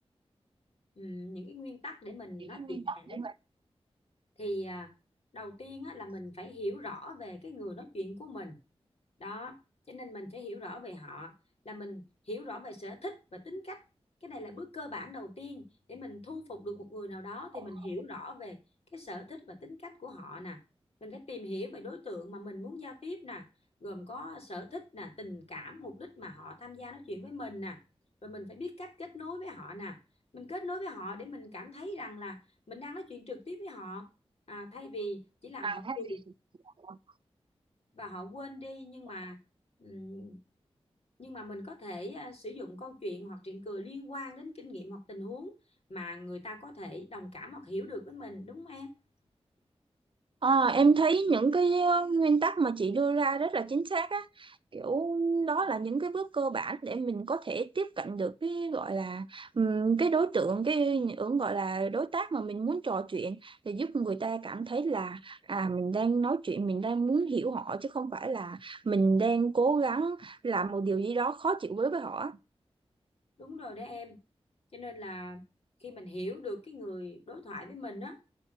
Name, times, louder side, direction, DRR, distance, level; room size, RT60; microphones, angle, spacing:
voice 1, 0.9-3.2 4.4-4.9 5.3-8.6 9.2-9.6 9.9-11.3 11.6-13.8 14.2-18.6 18.9-20.6 21.0-23.5 23.8-27.8 28.2-30.0 30.3-32.4 32.7-34.1 34.5-36.2 37.9-39.4 39.8-40.4 41.2-45.5 45.9-48.9 73.4-74.2 74.7-75.4 75.8-78.2, left 1 dB, 70° left, 3.2 m, -41 dB
voice 2, 2.4-3.3 17.5-17.6 35.6-36.0 36.8-37.0 50.4-72.4, right 4 dB, 55° right, 0.6 m, -29 dB
11.0 x 3.9 x 6.8 m
cardioid pair, 50°, 11 cm